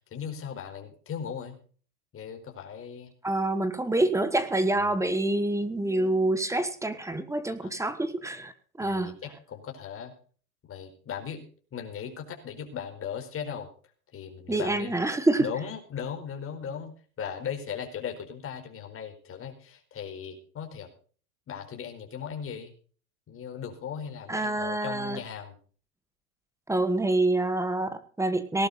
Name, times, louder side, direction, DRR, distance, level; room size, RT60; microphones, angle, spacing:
voice 1, 0.1-1.6 2.1-3.1 7.6-7.7 8.8-10.1 10.7-11.4 11.7-13.7 14.1-15.0 15.4-20.9 21.5-22.7 23.3-25.6, left 7 dB, 30° left, 3 dB, 4.6 m, -38 dB
voice 2, 3.2-8.5 8.8-9.1 14.5-15.5 24.3-25.2 26.7-28.7, right 2 dB, 5° right, 12 dB, 1.4 m, -26 dB
18.5 x 11.5 x 4.2 m, 0.42 s
supercardioid pair, 125°, 44 cm